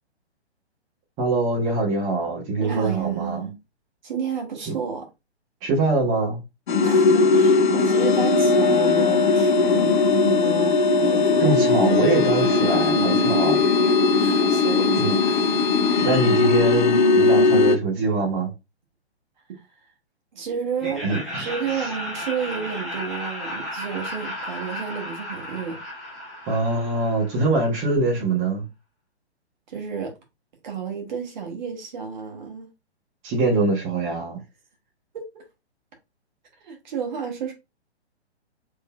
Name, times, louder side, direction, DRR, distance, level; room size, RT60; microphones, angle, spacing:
voice 1, 1.2-3.4 5.6-6.4 11.4-13.6 15.0-15.2 16.0-18.5 21.0-21.5 21.8-21.9 26.5-28.6 33.2-34.4, right 2 dB, 20° right, 1.2 m, -23 dB
voice 2, 2.6-3.6 4.0-5.1 6.8-11.5 12.7-13.4 14.1-15.7 19.5-19.9 20.3-25.8 29.7-30.1 30.6-32.7 35.1-35.4 36.6-37.5, right 6 dB, 45° right, 1.4 m, -31 dB
sound 1, 6.7-17.8, left 3 dB, 45° left, 0.6 m, -19 dB
Laughter, 20.8-27.7, left 1 dB, ahead, 0.4 m, -34 dB
3.9 x 3.2 x 2.3 m
figure-of-eight pair, 125°, 33 cm